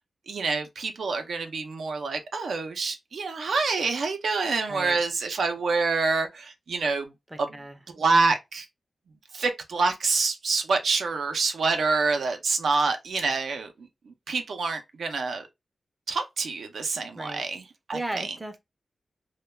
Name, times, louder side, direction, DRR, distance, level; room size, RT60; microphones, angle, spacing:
voice 1, 0.3-7.1 7.4-7.6 7.9-8.7 9.3-15.5 16.1-18.4, right 4 dB, 80° right, 0.4 m, -27 dB
voice 2, 7.3-7.8 17.1-17.4 17.9-18.6, right 1 dB, 15° right, 0.4 m, -35 dB
2.2 x 2.2 x 3.1 m
wide cardioid pair, 140°, 0 cm